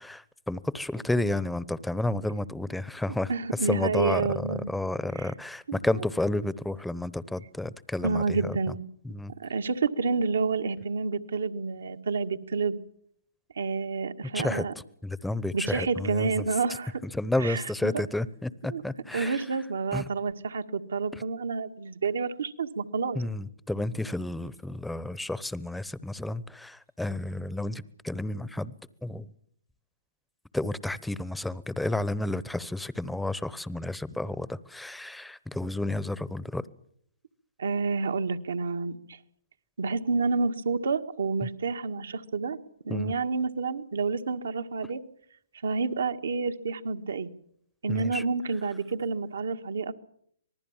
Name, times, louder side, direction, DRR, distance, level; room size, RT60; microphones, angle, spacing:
voice 1, 0.0-3.3 3.7-4.2 4.5-8.2 9.0-9.3 14.3-14.6 15.0-16.4 17.1-19.4 19.9-20.1 23.1-28.7 29.0-29.3 30.5-36.6 42.9-43.1 47.9-48.2, left 2 dB, 5° left, 0.9 m, -31 dB
voice 2, 3.1-4.7 5.1-5.3 5.7-5.8 8.0-8.8 9.4-12.8 13.5-14.7 15.5-17.0 17.4-18.0 18.7-18.8 19.1-23.2 37.6-39.2 39.8-42.6 42.8-45.0 45.6-47.3 47.8-49.9, right 4 dB, 75° right, 1.7 m, -29 dB
26.0 x 19.5 x 7.3 m
hypercardioid pair, 140°, 0 cm